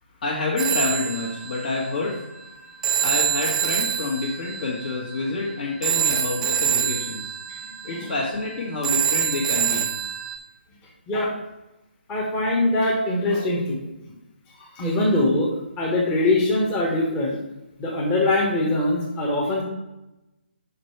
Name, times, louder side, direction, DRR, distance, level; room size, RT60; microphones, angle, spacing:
voice 1, 0.2-2.5 3.0-7.3 7.8-9.9, left 3 dB, 50° left, -5 dB, 1.6 m, -28 dB
Telephone, 0.6-10.4, right 9 dB, 5° right, 0.3 m, -26 dB
voice 2, 12.1-13.8 14.6-15.5 15.8-17.4 17.8-19.6, left 2 dB, 15° left, -3 dB, 1.1 m, -22 dB
5.5 x 5.1 x 4.5 m, 0.96 s
hypercardioid pair, 155°, 6 cm